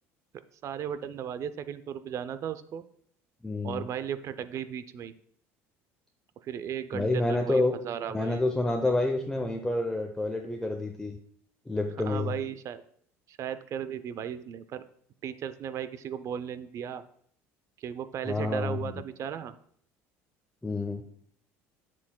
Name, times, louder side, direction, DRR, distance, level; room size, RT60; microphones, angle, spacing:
voice 1, 0.6-2.8 3.6-5.1 6.4-8.4 12.1-12.8 13.3-14.8 15.2-17.0 17.8-19.5, right 9 dB, 50° right, 13 dB, 0.5 m, -36 dB
voice 2, 3.4-3.8 6.9-7.7 8.1-11.2 11.7-12.3 18.2-18.9 20.6-21.0, left 2 dB, 10° left, 3 dB, 0.6 m, -28 dB
7.4 x 7.2 x 2.2 m, 0.62 s
supercardioid pair, 90°, 7 cm